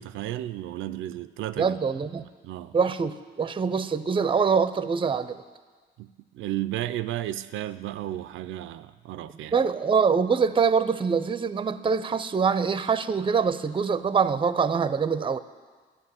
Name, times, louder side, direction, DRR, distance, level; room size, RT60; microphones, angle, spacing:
voice 1, 0.0-1.8 2.4-2.8 6.0-9.6, right 13 dB, 80° right, 0.5 m, -33 dB
voice 2, 1.6-2.2 2.7-5.4 9.5-15.4, right 6 dB, 25° right, 0.6 m, -24 dB
11.5 x 7.9 x 9.5 m
cardioid pair, 90°, 20 cm